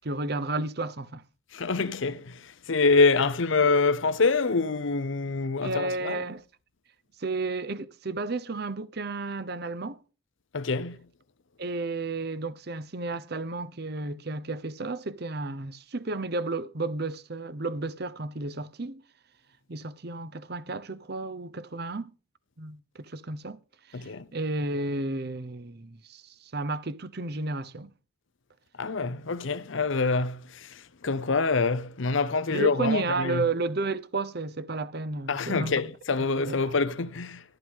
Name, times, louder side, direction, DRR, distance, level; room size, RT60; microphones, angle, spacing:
voice 1, 0.0-1.2 5.6-6.4 7.2-10.0 11.6-19.0 19.7-22.1 22.6-23.6 23.9-27.9 32.5-35.7 36.5-36.6, right 3 dB, 50° right, 0.8 m, -32 dB
voice 2, 1.5-6.2 10.5-11.0 23.9-24.3 28.8-33.4 35.3-37.4, left 4 dB, 70° left, 0.8 m, -26 dB
13.0 x 11.0 x 3.7 m
head